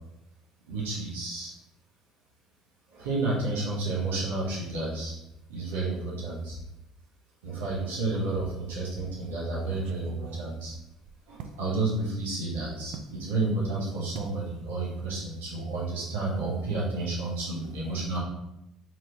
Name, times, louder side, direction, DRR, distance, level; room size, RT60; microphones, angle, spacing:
voice 1, 0.7-1.5 2.9-5.1 5.5-6.5 7.4-10.7 11.3-18.2, right 3 dB, 85° right, -6 dB, 1.1 m, -31 dB
sound 1, 9.6-11.6 12.9-13.2 14.1-14.4 14.7-15.1 15.3-15.5, right 6 dB, 70° right, 0.4 m, -45 dB
3.1 x 3.0 x 4.0 m, 0.88 s
hypercardioid pair, 65°, 0 cm